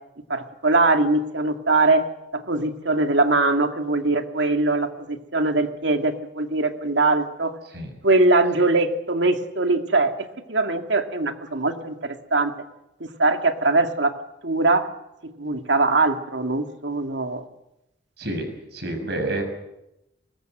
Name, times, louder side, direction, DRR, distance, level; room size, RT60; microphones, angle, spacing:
voice 1, 0.3-2.0 2.3-7.5 8.0-10.1 10.5-12.5 13.0-14.1 14.4-14.9 15.2-17.4, right 2 dB, 80° right, 6 dB, 2.2 m, -21 dB
voice 2, 18.7-19.4, right 2 dB, 60° right, 5 dB, 6.5 m, -28 dB
24.0 x 20.5 x 7.9 m, 0.90 s
head